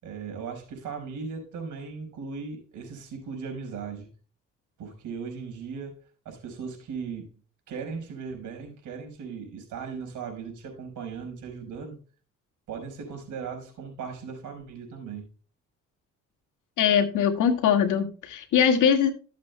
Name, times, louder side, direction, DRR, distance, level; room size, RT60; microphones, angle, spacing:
voice 1, 0.0-4.1 4.8-6.0 6.2-7.3 7.7-12.0 12.7-15.3, right 5 dB, 80° right, 5.0 m, -37 dB
voice 2, 16.8-19.1, left 8 dB, 85° left, 1.9 m, -22 dB
14.5 x 7.6 x 2.3 m
cardioid pair, 90°, 30 cm